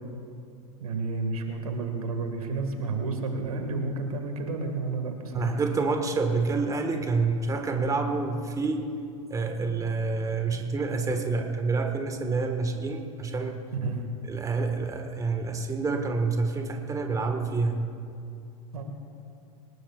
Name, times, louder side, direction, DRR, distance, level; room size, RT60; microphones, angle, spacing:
voice 1, 0.8-5.6 13.8-14.0 18.7-18.8, right 3 dB, 80° right, 4 dB, 2.0 m, -31 dB
voice 2, 5.3-8.9 9.3-13.6 14.3-17.8, right 3 dB, 20° right, 4 dB, 1.6 m, -28 dB
23.5 x 20.0 x 2.5 m, 2.6 s
hypercardioid pair, 90°, 18 cm